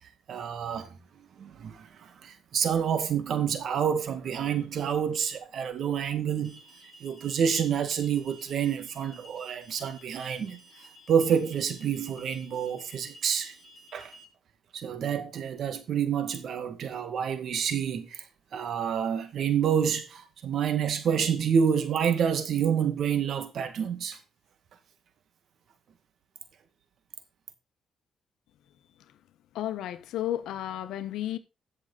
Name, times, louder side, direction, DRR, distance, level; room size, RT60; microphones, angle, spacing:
voice 1, 0.3-0.9 1.4-6.6 7.0-10.6 11.1-13.6 13.9-14.1 14.7-18.2 18.5-24.2, right 7 dB, 65° right, 2.0 m, -28 dB
Alarm, 6.4-14.2, equal, 10° left, 7.3 m, -53 dB
voice 2, 29.5-31.4, left 12 dB, 85° left, 1.2 m, -32 dB
14.0 x 6.6 x 4.2 m
cardioid pair, 90°, 0 cm